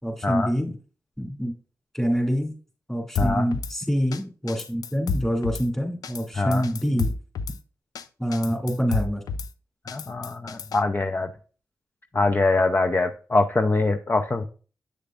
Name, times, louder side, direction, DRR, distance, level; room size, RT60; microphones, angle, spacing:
voice 1, 0.0-0.8 1.2-1.5 1.9-2.5 2.9-7.1 8.2-9.2, equal, 10° left, 2 dB, 2.5 m, -26 dB
Drum kit / Snare drum, 3.2-3.7 4.1-4.2 4.5-5.7 6.0-6.2 6.5-7.6 8.0-8.1 8.3-9.5 9.9-10.8, left 4 dB, 80° left, 0.5 m, -30 dB
voice 2, 3.2-3.5 6.4-6.6 9.8-11.3 12.1-14.4, left 3 dB, 35° left, 6 dB, 0.6 m, -23 dB
7.9 x 6.6 x 2.5 m, 0.38 s
cardioid pair, 45°, 6 cm